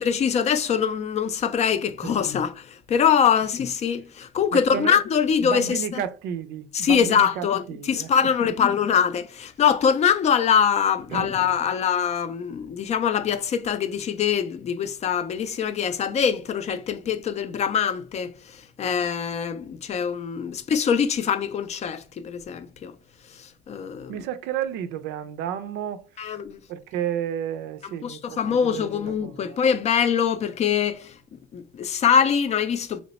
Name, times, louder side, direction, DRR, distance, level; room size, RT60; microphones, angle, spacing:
voice 1, 0.0-6.0 6.7-18.3 18.8-22.9 23.4-24.2 26.2-26.6 27.8-31.2 31.5-33.0, left 7 dB, 40° left, 0.4 m, -23 dB
voice 2, 4.5-5.0 5.4-8.1 8.4-8.5 11.1-11.3 24.1-26.0 26.7-28.4 28.7-29.6, right 9 dB, 90° right, 0.4 m, -31 dB
3.0 x 2.1 x 4.0 m
cardioid pair, 110°, 17 cm